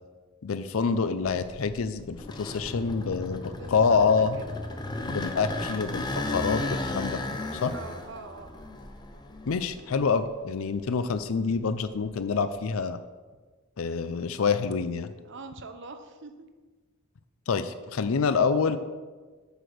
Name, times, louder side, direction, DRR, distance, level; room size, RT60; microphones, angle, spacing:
voice 1, 0.4-4.4 5.1-7.7 9.5-13.0 13.8-15.1 17.5-18.8, left 5 dB, 75° left, 11 dB, 0.5 m, -27 dB
sound 1, 1.2-10.3 10.7-12.6, left 2 dB, 20° left, 0.7 m, -35 dB
voice 2, 3.5-4.0 4.4-4.6 7.7-8.7 15.2-16.5, right 3 dB, 60° right, 7 dB, 0.8 m, -44 dB
8.0 x 6.1 x 6.5 m, 1.4 s
head